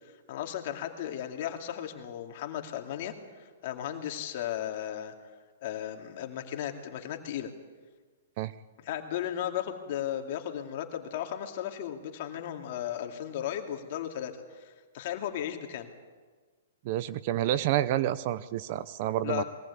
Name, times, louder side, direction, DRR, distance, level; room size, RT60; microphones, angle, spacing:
voice 1, 0.3-5.1 5.6-7.5 8.8-15.9 19.2-19.4, left 10 dB, 50° left, 4 dB, 2.4 m, -35 dB
voice 2, 16.8-19.4, right 13 dB, 45° right, 16 dB, 0.7 m, -29 dB
22.0 x 18.5 x 8.4 m, 1.4 s
hypercardioid pair, 145°, 0 cm